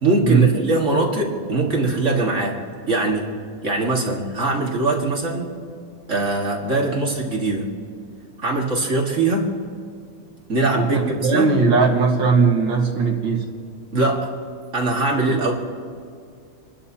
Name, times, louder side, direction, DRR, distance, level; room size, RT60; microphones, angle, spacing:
voice 1, 0.0-3.3 3.6-5.6 6.1-7.7 8.4-9.6 10.5-11.6 13.9-14.4 14.7-15.5, right 2 dB, 35° right, -1 dB, 2.1 m, -22 dB
voice 2, 10.8-13.5, right 4 dB, 60° right, 2 dB, 2.3 m, -18 dB
29.5 x 13.0 x 2.8 m, 2.3 s
omnidirectional pair, 2.3 m